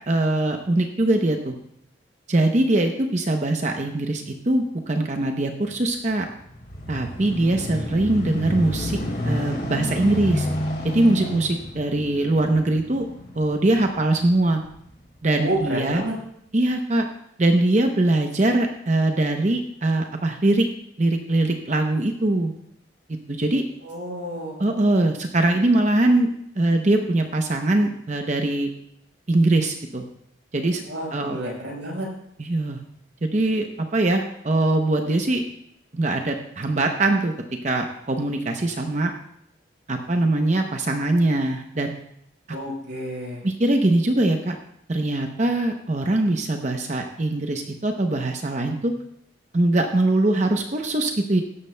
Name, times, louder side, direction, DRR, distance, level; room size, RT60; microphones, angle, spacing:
voice 1, 0.1-1.6 2.3-6.3 6.9-9.0 9.2-10.5 10.8-13.1 13.3-14.6 15.2-16.0 16.5-17.1 17.4-20.7 21.0-22.5 23.3-23.6 24.6-26.3 26.6-28.7 29.3-30.0 30.5-30.8 31.1-31.4 32.4-32.8 33.2-35.4 35.9-37.3 37.6-39.1 39.9-41.9 43.4-44.6 44.9-48.9 49.5-51.4, right 2 dB, 40° right, 4 dB, 0.7 m, -22 dB
sound 1, 6.1-14.9 15.5-15.6, left 1 dB, 55° left, 3.0 m, -30 dB
voice 2, 15.3-16.1 23.8-24.6 30.8-32.1 42.5-43.4, right 1 dB, 80° right, -2 dB, 4.8 m, -30 dB
16.5 x 12.5 x 2.2 m, 0.73 s
head